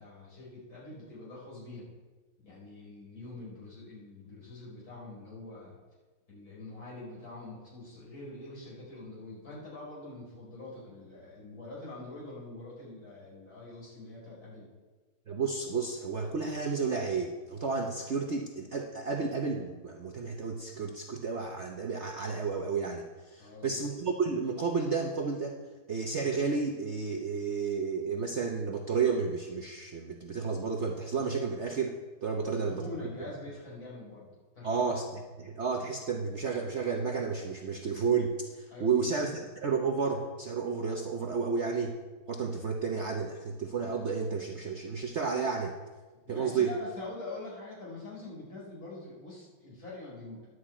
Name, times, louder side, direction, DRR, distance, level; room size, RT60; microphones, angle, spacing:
voice 1, 0.0-1.9 2.4-5.7 6.3-14.7 23.4-23.8 32.4-34.3 34.5-34.9 38.7-39.4 46.2-50.5, left 2 dB, 40° left, -6 dB, 5.1 m, -45 dB
voice 2, 15.3-25.6 25.9-32.8 34.6-35.1 35.4-42.0 42.3-45.7 46.3-46.7, right 5 dB, 85° right, 2 dB, 0.6 m, -31 dB
10.0 x 6.4 x 8.6 m, 1.3 s
omnidirectional pair, 2.4 m